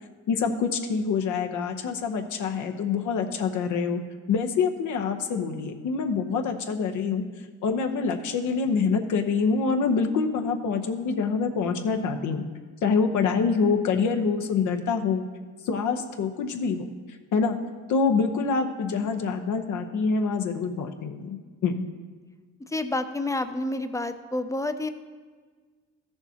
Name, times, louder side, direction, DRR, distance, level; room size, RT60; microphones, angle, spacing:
voice 1, 0.3-4.0 4.3-7.2 7.6-12.4 12.8-15.2 15.7-16.9 17.3-17.6 17.9-21.9, left 5 dB, 75° left, 4 dB, 0.9 m, -26 dB
voice 2, 22.6-24.9, left 2 dB, 10° left, 9 dB, 0.5 m, -29 dB
14.0 x 6.8 x 2.8 m, 1.5 s
cardioid pair, 90°, 30 cm